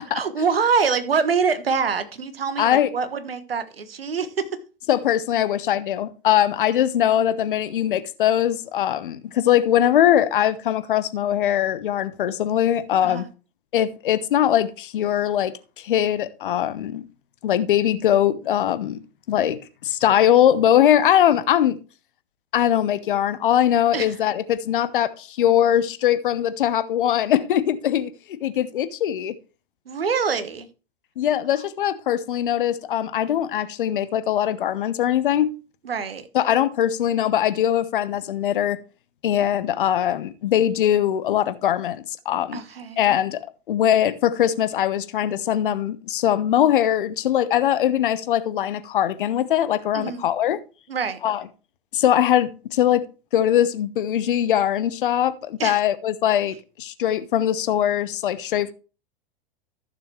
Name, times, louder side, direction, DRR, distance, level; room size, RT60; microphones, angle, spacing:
voice 1, 0.1-4.5 13.0-13.3 23.9-24.2 29.9-30.7 31.6-31.7 35.8-36.3 42.5-43.0 49.9-50.3 50.9-51.2 55.6-55.8, right 5 dB, 70° right, 1.3 m, -25 dB
voice 2, 2.6-2.9 4.9-13.3 13.7-15.5 15.8-17.1 17.4-19.0 19.3-21.8 22.5-29.3 31.2-35.5 36.3-38.8 39.2-42.6 43.0-50.6 51.2-51.4 51.9-53.1 53.3-58.7, left 10 dB, 60° left, 1.0 m, -21 dB
14.5 x 6.7 x 3.2 m
figure-of-eight pair, 95°, 30 cm